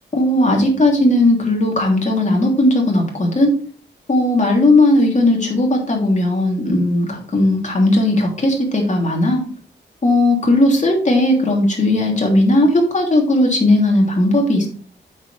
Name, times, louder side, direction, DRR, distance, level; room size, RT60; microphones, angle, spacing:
voice 1, 0.1-3.5 4.1-9.4 10.0-14.7, left 1 dB, 40° left, 0 dB, 3.2 m, -16 dB
9.0 x 7.2 x 3.4 m, 0.42 s
wide cardioid pair, 125°, 19 cm